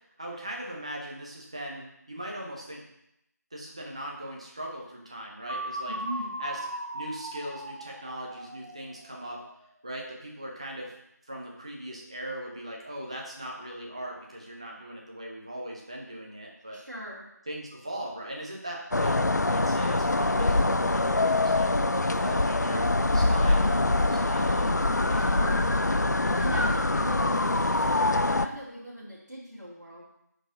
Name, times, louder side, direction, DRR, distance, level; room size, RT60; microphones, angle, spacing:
voice 1, 0.2-2.8 3.5-5.9 6.4-6.6 6.9-9.4 9.8-10.9 11.3-16.8 17.5-21.7 22.0-24.7 25.1-26.0, right 1 dB, 20° right, -1 dB, 0.8 m, -39 dB
sound 1, 5.5-9.4, right 1 dB, 50° right, 1.1 m, -37 dB
voice 2, 5.8-6.4 16.7-17.3 25.0-25.4 26.3-30.1, right 1 dB, 70° right, -8 dB, 2.6 m, -40 dB
sound 2, 18.9-28.5, left 2 dB, 70° left, 0.5 m, -24 dB
11.0 x 4.5 x 3.8 m, 0.81 s
figure-of-eight pair, 170°, 10 cm